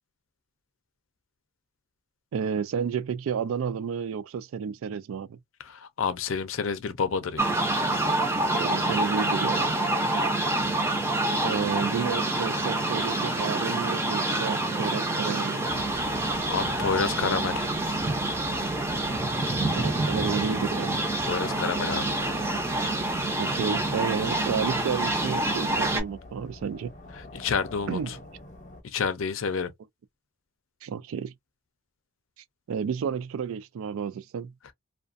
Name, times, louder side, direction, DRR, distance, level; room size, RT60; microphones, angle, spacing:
voice 1, 2.3-5.4 8.5-9.8 11.4-15.8 19.7-21.0 23.4-26.9 27.9-28.1 30.8-31.3 32.7-34.5, right 6 dB, 85° right, 0.3 m, -31 dB
voice 2, 5.6-7.6 15.9-16.1 16.5-17.7 21.3-22.2 22.6-22.9 27.3-28.0 28.8-29.7, left 5 dB, 75° left, 0.5 m, -29 dB
sound 1, 7.4-26.0, right 2 dB, 15° right, 0.5 m, -27 dB
sound 2, 15.7-28.8, left 2 dB, 35° left, 0.8 m, -45 dB
2.4 x 2.2 x 2.4 m
head